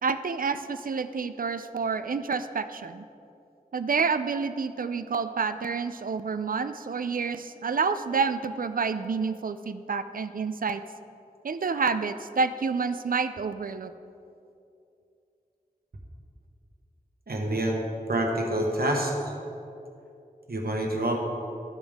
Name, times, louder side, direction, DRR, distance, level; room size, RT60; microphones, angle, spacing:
voice 1, 0.0-3.0 3.7-10.8 11.4-13.9, right 5 dB, 70° right, 11 dB, 0.4 m, -28 dB
voice 2, 17.3-17.8 18.1-19.3 20.5-21.2, right 1 dB, 85° right, 0 dB, 1.1 m, -27 dB
12.5 x 5.3 x 3.6 m, 2.6 s
wide cardioid pair, 55°, 15 cm